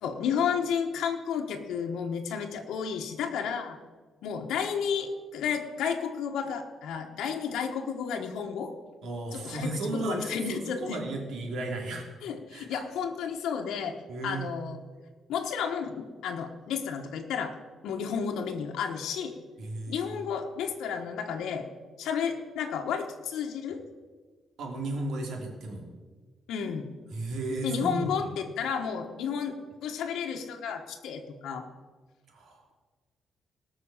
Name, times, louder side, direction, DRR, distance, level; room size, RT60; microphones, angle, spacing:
voice 1, 0.0-3.8 4.2-8.7 9.3-11.0 12.2-14.0 14.2-14.8 15.3-17.5 17.8-19.3 19.9-21.7 22.0-23.8 26.5-26.9 27.6-29.6 29.8-31.7, left 7 dB, 85° left, 3 dB, 1.3 m, -32 dB
voice 2, 9.0-12.0 12.5-12.8 14.1-14.5 19.6-20.2 24.6-25.8 27.1-28.0 32.3-32.6, right 2 dB, 60° right, 1 dB, 2.9 m, -34 dB
19.0 x 6.3 x 7.2 m, 1.4 s
cardioid pair, 175°, 0 cm